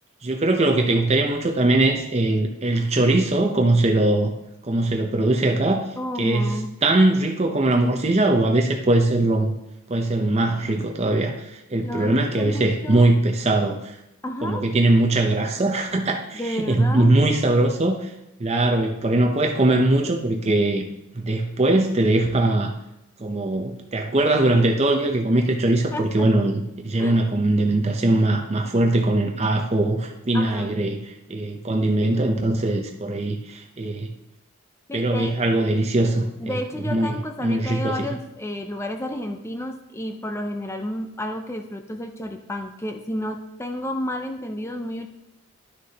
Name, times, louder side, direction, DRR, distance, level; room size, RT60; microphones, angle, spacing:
voice 1, 0.2-4.3 4.6-5.8 6.2-6.5 6.8-9.5 9.9-14.0 14.4-18.1 18.4-20.8 21.1-22.7 23.2-31.0 31.3-34.1 34.9-36.6 36.9-37.2 37.4-38.1, right 2 dB, 30° right, 3 dB, 0.6 m, -21 dB
voice 2, 6.0-6.7 11.7-13.0 14.2-14.7 16.3-17.1 25.9-26.3 27.0-27.1 30.3-30.8 34.9-35.3 36.4-45.1, left 1 dB, 10° left, 5 dB, 0.5 m, -31 dB
11.5 x 6.4 x 2.9 m, 0.87 s
head